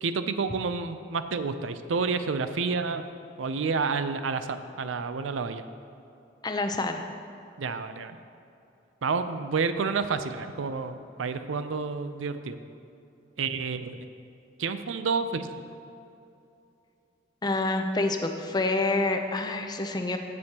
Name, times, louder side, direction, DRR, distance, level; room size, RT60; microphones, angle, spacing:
voice 1, 0.0-3.1 3.4-5.6 7.6-8.2 9.0-12.6 13.4-14.0 14.6-15.5, right 4 dB, 90° right, 10 dB, 0.5 m, -29 dB
voice 2, 6.4-7.0 17.4-20.2, left 2 dB, 20° left, 5 dB, 0.5 m, -27 dB
15.0 x 6.4 x 2.9 m, 2.7 s
head